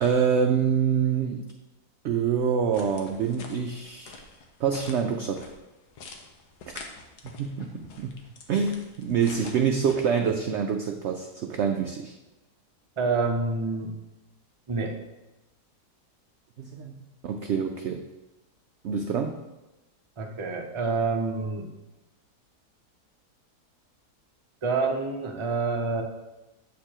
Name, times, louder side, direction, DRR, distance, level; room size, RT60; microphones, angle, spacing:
voice 1, 0.0-1.5 2.0-4.2 4.6-5.5 6.7-6.8 7.4-8.2 8.5-12.1 16.6-18.0 18.8-19.4, right 7 dB, 70° right, 4 dB, 0.6 m, -26 dB
sound 1, 2.7-9.9, left 4 dB, 85° left, 1.4 m, -46 dB
voice 2, 13.0-13.9 14.7-15.0 20.2-21.7 24.6-26.0, right 3 dB, 30° right, 2 dB, 0.5 m, -27 dB
8.2 x 6.6 x 2.9 m, 1.0 s
omnidirectional pair, 1.7 m